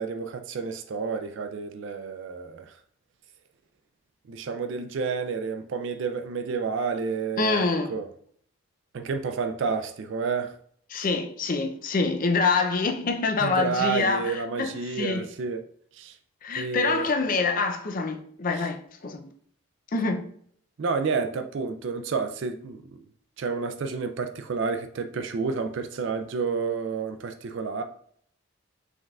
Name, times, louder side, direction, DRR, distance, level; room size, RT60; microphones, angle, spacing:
voice 1, 0.0-2.8 4.3-8.1 8.9-10.5 10.9-11.0 13.4-15.6 15.9-16.2 16.6-17.1 20.8-23.0 23.4-27.8, right 5 dB, 60° right, 0.4 m, -30 dB
voice 2, 7.4-7.9 10.9-15.2 16.4-19.3 19.9-20.3, left 4 dB, 40° left, 0.5 m, -26 dB
5.2 x 3.5 x 2.3 m
head